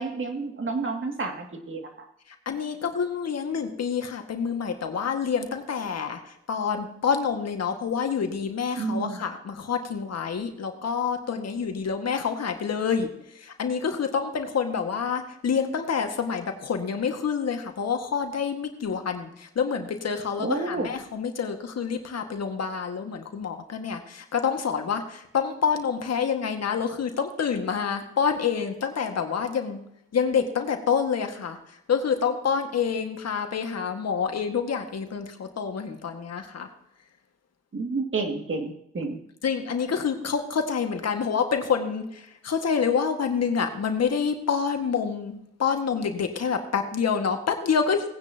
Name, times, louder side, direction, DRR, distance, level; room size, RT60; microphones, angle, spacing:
voice 1, 0.0-2.1 8.8-9.2 20.4-20.9 37.7-39.2, right 3 dB, 40° right, 3 dB, 2.6 m, -30 dB
voice 2, 2.5-13.1 13.4-29.8 30.1-31.6 31.9-36.7 39.4-48.1, left 6 dB, 55° left, 5 dB, 2.0 m, -27 dB
18.0 x 9.8 x 3.0 m, 0.75 s
supercardioid pair, 50°, 30 cm